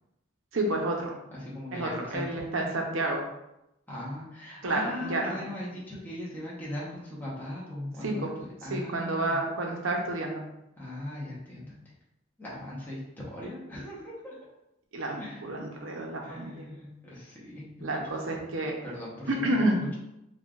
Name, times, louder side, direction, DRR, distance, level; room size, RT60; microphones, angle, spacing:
voice 1, 0.5-1.1 1.7-3.2 4.6-5.4 8.0-8.3 8.7-10.4 14.9-16.7 17.8-18.7 19.3-19.8, right 2 dB, 80° right, 0 dB, 0.8 m, -30 dB
voice 2, 1.3-2.4 3.9-9.4 10.8-11.8 12.4-14.4 15.2-15.5 16.2-18.2 18.8-19.6, left 1 dB, 10° left, -7 dB, 1.0 m, -39 dB
5.2 x 2.4 x 2.5 m, 0.85 s
head